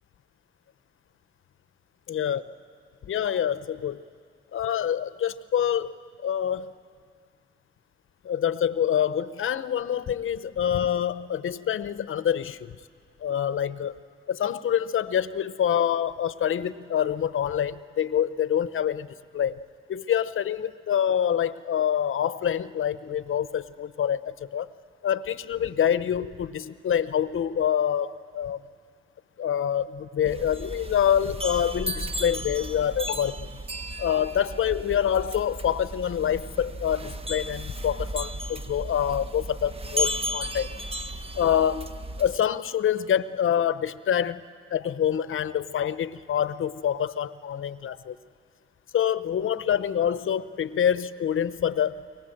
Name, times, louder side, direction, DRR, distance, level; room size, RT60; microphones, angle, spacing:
voice 1, 2.1-2.4 3.0-4.0 4.5-5.9 6.2-6.7 8.2-12.8 13.2-14.0 14.3-19.1 19.3-19.6 19.9-24.7 25.0-28.6 29.4-33.5 34.0-40.7 41.4-41.9 42.2-44.4 44.7-48.2 48.9-52.0, left 9 dB, 75° left, 14 dB, 0.8 m, -26 dB
sound 1, 30.2-42.4, equal, 25° right, 1.0 m, -34 dB
28.5 x 23.5 x 7.8 m, 2.1 s
cardioid pair, 70°, 21 cm